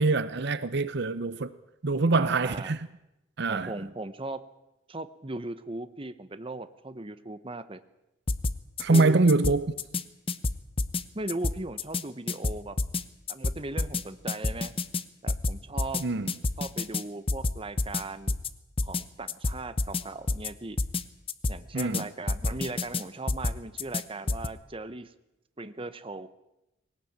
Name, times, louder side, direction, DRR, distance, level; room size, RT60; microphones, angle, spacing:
voice 1, 0.0-1.5 1.8-2.9 3.4-3.7 8.8-9.7 16.0-16.3 21.7-22.0, right 3 dB, 55° right, 0.8 m, -24 dB
voice 2, 2.1-2.7 3.5-4.4 4.9-7.8 8.8-9.1 9.9-10.0 11.1-12.8 13.3-14.7 15.2-16.1 16.6-18.4 18.8-20.8 21.5-25.1 25.6-26.3, right 2 dB, 25° right, 0.9 m, -38 dB
sound 1, 8.3-9.0 9.3-10.0 10.3-11.0 11.3-12.0 12.3-13.0 13.3-14.0 14.3-15.0 15.3-16.0 16.3-17.0 17.3-18.0 18.3-18.5 18.8-19.0 19.3-20.0 20.3-20.5 20.8-21.0 21.3-22.0 22.3-23.0 23.3-24.0 24.3-24.5, left 3 dB, 30° left, 0.9 m, -28 dB
20.0 x 18.5 x 8.8 m
head